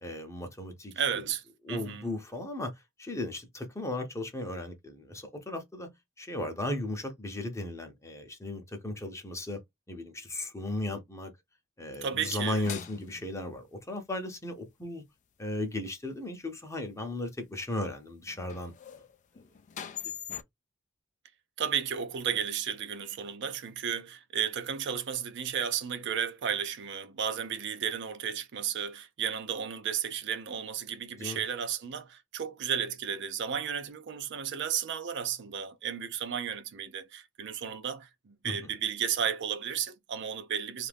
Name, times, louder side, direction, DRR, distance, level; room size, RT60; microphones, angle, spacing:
voice 1, 0.0-0.9 1.6-2.7 3.0-5.9 6.2-9.6 9.9-11.3 11.8-15.0 15.4-18.7 31.2-31.4 38.4-38.7, left 1 dB, 15° left, 0.7 m, -36 dB
voice 2, 1.0-1.4 1.7-2.0 12.0-12.6 21.6-40.9, right 8 dB, 60° right, 0.5 m, -33 dB
sound 1, 11.9-13.3 17.1-17.2 18.3-20.4, left 9 dB, 35° left, 0.3 m, -42 dB
2.6 x 2.5 x 3.4 m
head